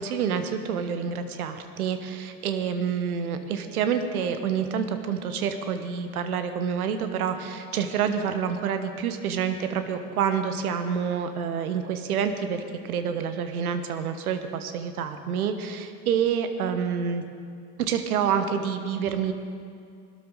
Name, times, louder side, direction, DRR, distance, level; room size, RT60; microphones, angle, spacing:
voice 1, 0.0-17.2 17.8-19.3, right 7 dB, 75° right, 8 dB, 1.3 m, -28 dB
20.5 x 12.5 x 4.0 m, 2.3 s
figure-of-eight pair, 70°, 45 cm